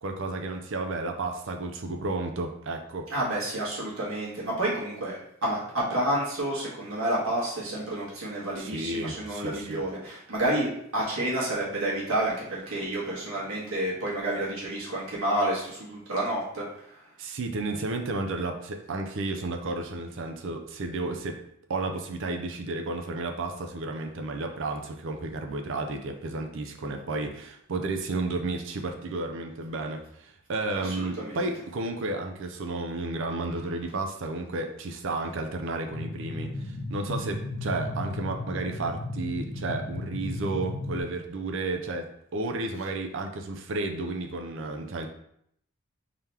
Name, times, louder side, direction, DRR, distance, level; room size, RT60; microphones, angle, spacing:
voice 1, 0.0-3.1 8.6-9.9 17.2-21.4 21.7-45.1, right 2 dB, 65° right, 4 dB, 0.5 m, -32 dB
voice 2, 3.1-16.6 30.7-31.4, right 1 dB, 80° right, -5 dB, 1.5 m, -29 dB
sound 1, 35.9-41.0, left 2 dB, 80° left, 0.9 m, -35 dB
3.8 x 2.9 x 3.4 m, 0.72 s
head